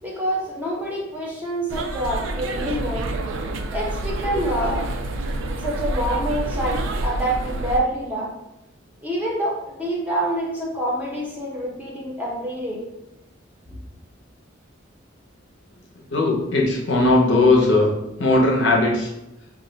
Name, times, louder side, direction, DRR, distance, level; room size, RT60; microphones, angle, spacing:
voice 1, 0.0-3.1 3.7-4.8 5.6-8.3 9.0-12.8, right 1 dB, 10° right, -4 dB, 0.6 m, -26 dB
sound 1, 1.7-7.8, right 2 dB, 75° right, 0.3 m, -28 dB
voice 2, 16.1-17.9 18.2-19.1, left 2 dB, 60° left, -1 dB, 0.6 m, -18 dB
2.4 x 2.0 x 3.7 m, 0.90 s
head